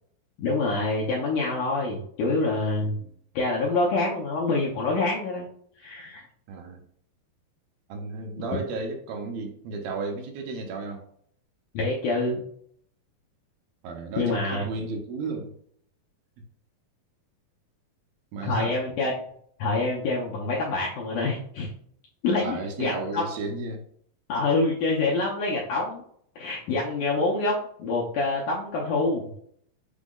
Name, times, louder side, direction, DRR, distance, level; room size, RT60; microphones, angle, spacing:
voice 1, 0.4-3.0 3.3-5.5 5.8-6.2 11.7-12.4 14.2-14.6 18.4-19.1 19.6-21.7 22.2-23.2 24.3-26.0 26.3-29.2, left 3 dB, 80° left, -4 dB, 1.8 m, -26 dB
voice 2, 2.8-3.1 6.5-6.8 7.9-11.0 13.8-15.5 18.3-18.7 22.4-23.8, right 3 dB, 80° right, 3 dB, 2.4 m, -34 dB
6.0 x 2.1 x 3.7 m, 0.64 s
omnidirectional pair, 4.4 m